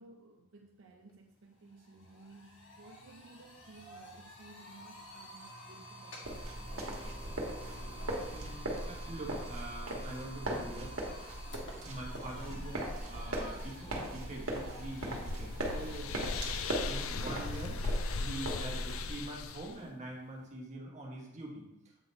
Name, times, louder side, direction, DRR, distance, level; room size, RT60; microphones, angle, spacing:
voice 1, 0.0-7.2, right 2 dB, 65° right, 2 dB, 0.5 m, -57 dB
sound 1, 1.1-1.2 1.5-20.5, equal, 55° left, 1.3 m, -52 dB
sound 2, 6.2-19.1, right 1 dB, 85° right, 1.4 m, -39 dB
voice 2, 8.3-11.0 11.8-16.2 16.4-16.6 16.8-17.8 18.2-21.7, right 1 dB, 30° right, -2 dB, 1.3 m, -44 dB
sound 3, 14.5-19.8, left 3 dB, 75° left, 0.4 m, -38 dB
8.1 x 3.9 x 4.1 m, 0.90 s
head